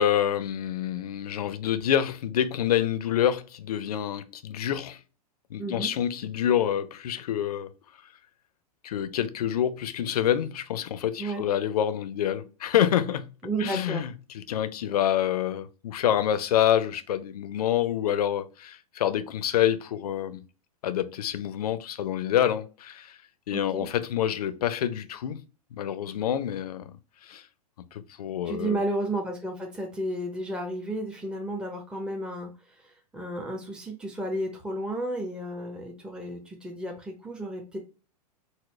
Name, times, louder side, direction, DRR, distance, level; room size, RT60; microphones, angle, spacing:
voice 1, 0.0-5.0 5.5-7.7 8.8-13.3 13.6-20.4 20.8-23.2 23.5-25.4 25.7-26.9 27.2-27.4 27.9-28.8, left 10 dB, 70° left, 0.5 m, -27 dB
voice 2, 5.6-5.9 11.2-11.4 13.4-14.0 23.5-23.9 28.4-32.5 33.1-37.8, right 1 dB, 5° right, 0.7 m, -32 dB
4.0 x 2.1 x 3.0 m
hypercardioid pair, 110°, 20 cm